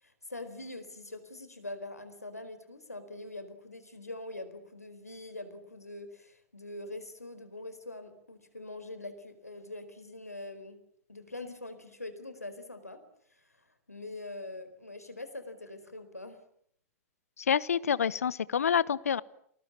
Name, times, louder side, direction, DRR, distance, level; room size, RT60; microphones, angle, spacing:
voice 1, 0.0-10.8 11.1-13.0 13.3-16.4, left 2 dB, 90° left, 10 dB, 4.5 m, -43 dB
voice 2, 17.4-19.2, left 7 dB, 75° left, 21 dB, 1.0 m, -27 dB
29.5 x 20.5 x 8.7 m, 0.67 s
figure-of-eight pair, 95°, 8 cm